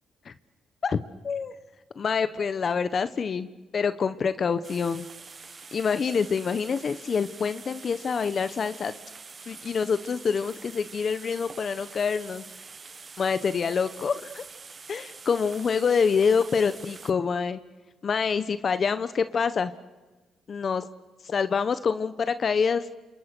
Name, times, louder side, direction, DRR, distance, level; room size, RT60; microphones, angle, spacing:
voice 1, 0.8-1.5 2.0-3.5 3.7-5.1 5.7-8.9 9.5-12.4 13.2-14.4 14.9-17.6 18.0-19.7 20.5-20.8 21.2-22.9, left 6 dB, 45° left, 12 dB, 1.1 m, -26 dB
sound 1, 4.6-17.1, right 5 dB, 35° right, 1.5 m, -45 dB
29.5 x 28.0 x 6.2 m, 1.2 s
cardioid pair, 90°, 0 cm